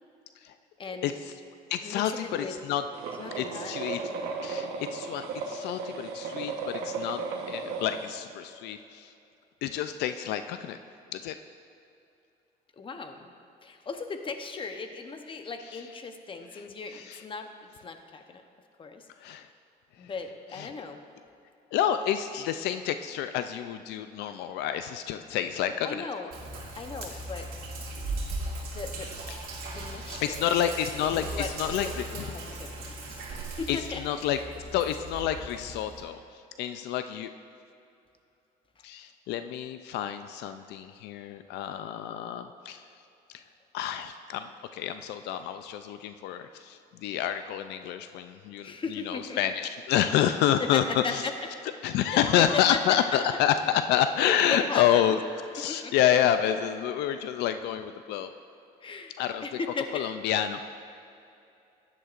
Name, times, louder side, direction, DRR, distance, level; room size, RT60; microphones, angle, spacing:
voice 1, 0.8-1.1 1.8-2.5 3.2-3.7 12.8-13.3 13.6-18.4 18.8-19.1 20.0-21.0 25.8-26.3 26.7-27.5 28.7-29.1 29.7-30.5 30.9-33.3 33.6-34.0 38.8-38.9 48.6-49.4 50.6-51.3 52.1-52.8 54.2-55.2 55.7-55.9 58.8-60.1, left 4 dB, 30° left, 6 dB, 0.9 m, -37 dB
voice 2, 1.7-2.8 3.4-4.0 4.4-7.2 7.5-9.1 9.6-10.8 11.1-11.4 16.5-16.6 16.9-17.2 19.2-19.5 20.5-20.7 21.7-26.0 29.3-29.4 30.2-32.3 33.7-34.4 34.7-37.3 38.8-42.8 43.3-43.4 43.7-51.2 51.8-55.2 55.5-58.3 59.2-59.4 59.9-60.6, left 10 dB, 85° left, 9 dB, 0.4 m, -28 dB
sound 1, 2.9-8.1, right 4 dB, 85° right, 1.1 m, -35 dB
Sink (filling or washing), 26.3-36.0, right 2 dB, 60° right, 2.4 m, -38 dB
14.5 x 10.5 x 2.5 m, 2.7 s
cardioid pair, 110°, 17 cm